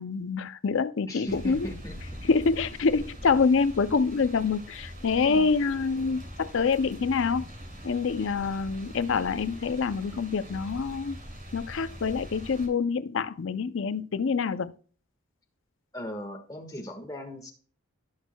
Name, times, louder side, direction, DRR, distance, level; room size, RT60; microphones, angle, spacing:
voice 1, 0.0-1.7 2.3-7.5 7.8-11.2 11.5-14.7, left 5 dB, 60° left, 0.5 m, -26 dB
voice 2, 1.1-1.9 5.2-5.5 15.9-17.5, equal, 15° left, 1.5 m, -38 dB
sound 1, 1.3-12.7, equal, 45° right, 2.8 m, -43 dB
18.0 x 6.3 x 2.2 m
head